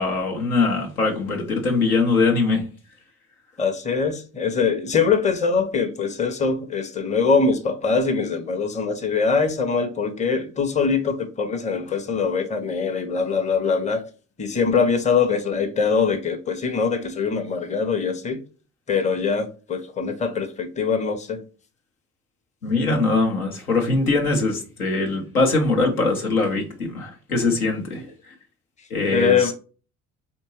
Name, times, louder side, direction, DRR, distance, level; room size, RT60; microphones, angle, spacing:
voice 1, 0.0-2.6 22.6-28.3 28.9-29.5, left 3 dB, 80° left, 1.0 m, -22 dB
voice 2, 3.6-14.0 14.4-18.4 18.9-21.4 29.1-29.6, left 5 dB, 15° left, 0.7 m, -23 dB
4.3 x 2.8 x 3.0 m
figure-of-eight pair, 50°, 43 cm